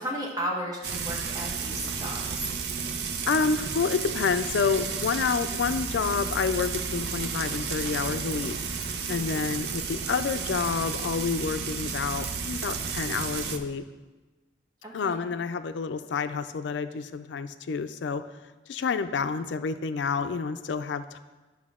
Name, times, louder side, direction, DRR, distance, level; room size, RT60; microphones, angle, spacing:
voice 1, 0.0-2.5 9.2-9.5 14.8-15.2, equal, 20° right, -3 dB, 1.4 m, -34 dB
Frying (food), 0.8-13.6, right 5 dB, 70° right, 0.6 m, -32 dB
voice 2, 3.3-8.6 9.1-13.8 14.9-18.2 18.7-21.2, left 5 dB, 90° left, 11 dB, 0.4 m, -29 dB
10.5 x 5.9 x 3.6 m, 1.2 s
head